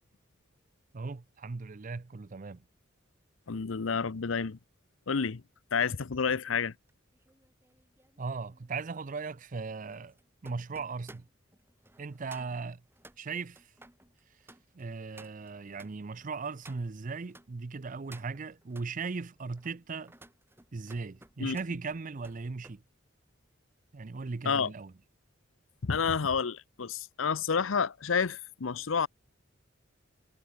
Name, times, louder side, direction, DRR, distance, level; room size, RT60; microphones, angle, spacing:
voice 1, 0.9-2.6 8.2-10.2 10.4-11.3 12.0-12.8 13.2-13.7 14.7-20.1 20.7-22.8 23.9-24.9, right 4 dB, 40° right, 0.5 m, -38 dB
voice 2, 3.5-4.6 5.1-5.4 5.7-6.7 21.4-21.6 24.4-24.7 25.8-29.1, left 6 dB, 90° left, 0.7 m, -29 dB
sound 1, 6.8-17.5 17.9-18.9 19.4-22.8 23.1-23.5, right 2 dB, 10° right, 5.1 m, -57 dB
head